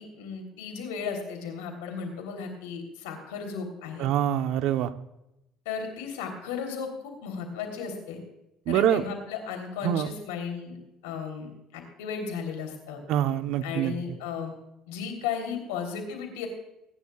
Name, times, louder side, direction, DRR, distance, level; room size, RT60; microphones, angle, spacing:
voice 1, 0.0-4.1 5.6-8.2 8.7-10.8 11.0-13.0 13.6-14.5 14.9-16.5, left 6 dB, 85° left, 4 dB, 3.4 m, -35 dB
voice 2, 4.0-4.9 8.7-9.0 9.8-10.1 13.1-13.9, right 11 dB, 70° right, 10 dB, 0.9 m, -25 dB
23.5 x 10.5 x 2.4 m, 0.88 s
supercardioid pair, 75°, 0 cm